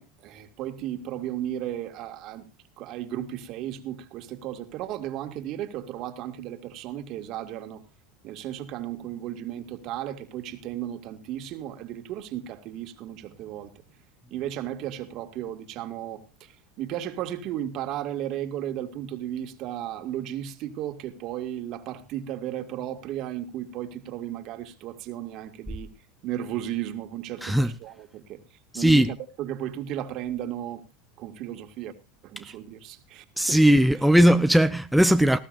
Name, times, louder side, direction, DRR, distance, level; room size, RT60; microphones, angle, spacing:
voice 1, 0.0-2.4 2.8-7.8 8.2-13.7 14.3-25.9 26.2-28.4 28.7-30.8 31.2-31.9 32.2-33.6 33.9-34.1, right 11 dB, 55° right, 2.1 m, -34 dB
voice 2, 27.4-27.8 28.7-29.1 32.4-32.5 33.4-35.4, equal, ahead, 0.6 m, -19 dB
19.0 x 14.5 x 2.6 m
supercardioid pair, 115°, 0 cm